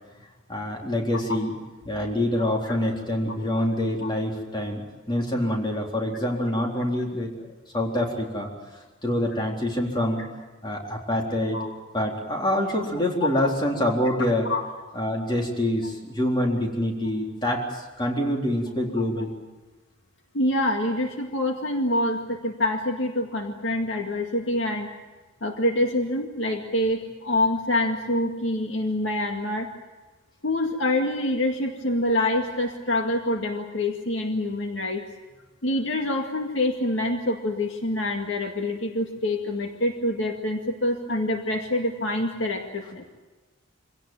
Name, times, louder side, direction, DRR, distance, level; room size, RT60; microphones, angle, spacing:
voice 1, 0.5-1.5 1.8-4.8 5.1-7.3 7.7-8.5 9.0-10.2 10.6-11.6 11.9-14.5 14.9-19.3, left 1 dB, 25° left, 0 dB, 3.9 m, -26 dB
voice 2, 2.4-2.8 4.0-4.1 11.5-11.7 13.2-13.3 14.4-14.6 19.2-19.3 20.3-24.9 25.4-29.7 30.4-35.0 35.6-43.0, left 1 dB, 70° left, 3 dB, 2.1 m, -26 dB
25.0 x 17.5 x 9.1 m, 1.2 s
head